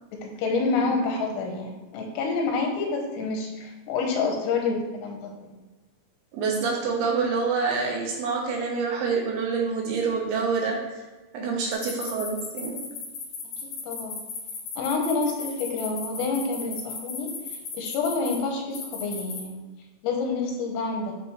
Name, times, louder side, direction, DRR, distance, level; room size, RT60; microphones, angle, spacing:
voice 1, 0.1-5.6 11.4-11.7 13.8-14.2 14.8-17.3 17.7-19.6 20.0-21.1, left 4 dB, 85° left, 1 dB, 2.9 m, -28 dB
voice 2, 6.3-11.0 11.3-12.8, right 5 dB, 75° right, -1 dB, 2.7 m, -27 dB
sound 1, 11.7-18.4 18.7-19.4, left 5 dB, 70° left, 2.0 m, -35 dB
9.0 x 3.8 x 3.0 m, 1.2 s
omnidirectional pair, 5.0 m